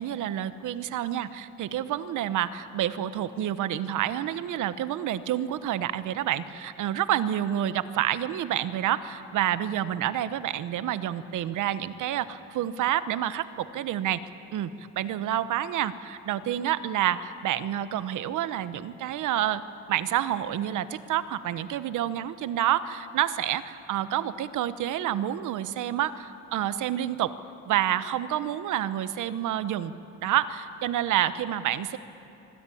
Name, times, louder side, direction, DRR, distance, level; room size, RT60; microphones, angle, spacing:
voice 1, 0.0-19.6 19.9-27.3 27.7-29.9 30.2-32.0, right 11 dB, 80° right, 13 dB, 1.1 m, -28 dB
25.0 x 20.0 x 8.6 m, 2.9 s
cardioid pair, 90°, 30 cm